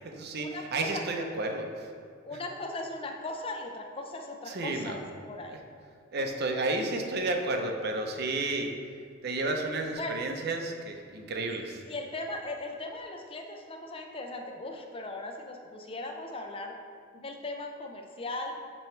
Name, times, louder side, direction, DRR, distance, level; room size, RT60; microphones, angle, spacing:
voice 1, 0.0-1.9 4.5-5.0 5.5-5.6 6.1-8.7 9.2-11.8, right 2 dB, 55° right, 3 dB, 0.7 m, -32 dB
voice 2, 2.2-5.6 10.0-10.2 11.9-16.8 17.1-18.6, left 2 dB, 25° left, 3 dB, 0.6 m, -38 dB
8.8 x 3.1 x 4.4 m, 2.2 s
head